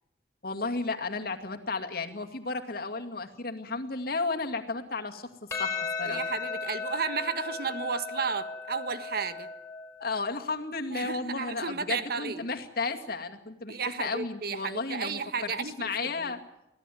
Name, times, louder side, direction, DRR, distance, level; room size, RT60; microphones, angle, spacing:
voice 1, 0.4-6.2 10.0-16.4, left 3 dB, 60° left, 4 dB, 2.3 m, -33 dB
Percussion, 5.5-10.1, left 4 dB, 15° left, 4.8 m, -36 dB
voice 2, 6.0-9.5 10.9-12.5 13.7-16.4, right 5 dB, 60° right, 11 dB, 1.5 m, -33 dB
24.5 x 16.5 x 9.3 m, 0.89 s
head